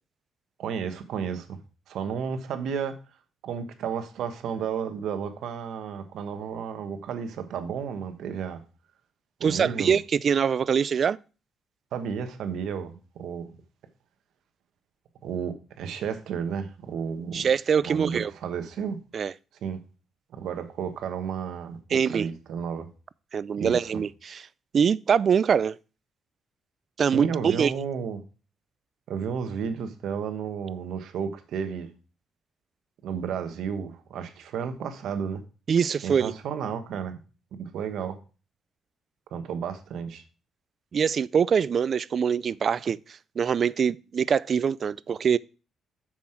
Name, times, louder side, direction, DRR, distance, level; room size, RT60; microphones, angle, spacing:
voice 1, 0.6-1.6 1.9-3.0 3.4-8.6 9.4-10.0 11.9-13.5 15.2-17.5 17.8-19.0 19.6-19.8 20.3-22.9 23.6-24.0 27.1-28.2 29.1-31.9 33.0-35.4 36.0-37.2 37.5-38.2 39.3-40.2, right 7 dB, 75° right, 1.2 m, -32 dB
voice 2, 9.4-11.2 17.3-18.3 19.1-19.3 21.9-22.3 23.3-24.4 24.7-25.8 27.0-27.7 35.7-36.3 40.9-45.4, right 7 dB, 50° right, 0.3 m, -24 dB
7.4 x 6.2 x 4.4 m
cardioid pair, 90°, 0 cm